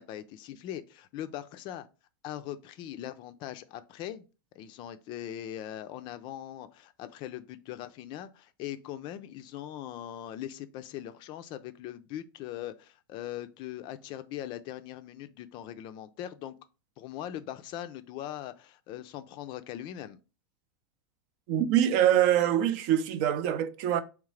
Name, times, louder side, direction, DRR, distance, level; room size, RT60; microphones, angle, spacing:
voice 1, 0.0-1.9 2.2-4.2 4.6-16.5 17.0-20.2, left 12 dB, 40° left, 0.4 m, -40 dB
voice 2, 21.5-24.0, right 11 dB, 50° right, 0.5 m, -24 dB
3.7 x 3.1 x 3.2 m
hypercardioid pair, 125°, 12 cm